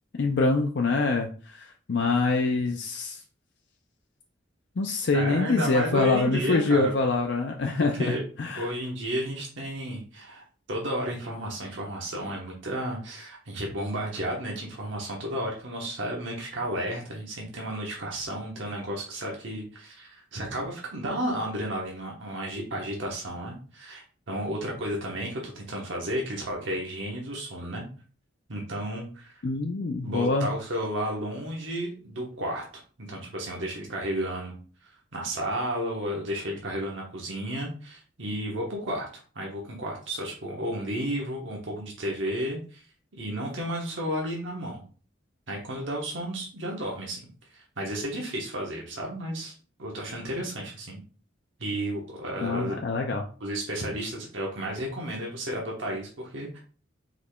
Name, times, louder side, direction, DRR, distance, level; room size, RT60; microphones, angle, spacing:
voice 1, 0.2-3.2 4.8-8.7 29.4-30.5 52.4-53.3, left 3 dB, 60° left, 2 dB, 0.5 m, -25 dB
voice 2, 5.1-6.9 8.0-8.2 8.6-27.9 28.5-29.3 30.0-32.8 33.1-34.6 35.1-39.1 39.3-42.8 43.2-44.8 45.5-47.2 47.5-49.5 49.8-51.0 51.6-52.8 53.4-56.6, equal, 70° right, -1 dB, 1.1 m, -32 dB
4.9 x 4.1 x 2.2 m, 0.39 s
head